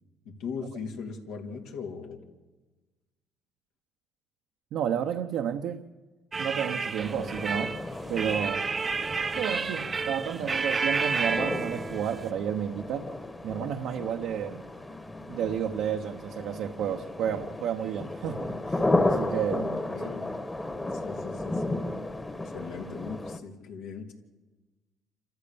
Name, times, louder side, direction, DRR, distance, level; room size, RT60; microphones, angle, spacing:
voice 1, 0.3-2.2 19.9-20.3 21.0-21.8 22.4-24.1, left 5 dB, 80° left, 3.5 m, -39 dB
voice 2, 4.7-5.8 6.4-7.8 8.1-8.7 9.3-13.1 13.4-14.6 15.3-19.8, right 9 dB, 70° right, 1.0 m, -31 dB
sound 1, 6.3-12.3, right 4 dB, 30° right, 0.8 m, -31 dB
sound 2, 7.0-23.4, left 2 dB, 15° left, 1.5 m, -34 dB
28.5 x 14.0 x 7.0 m
supercardioid pair, 85°, 0 cm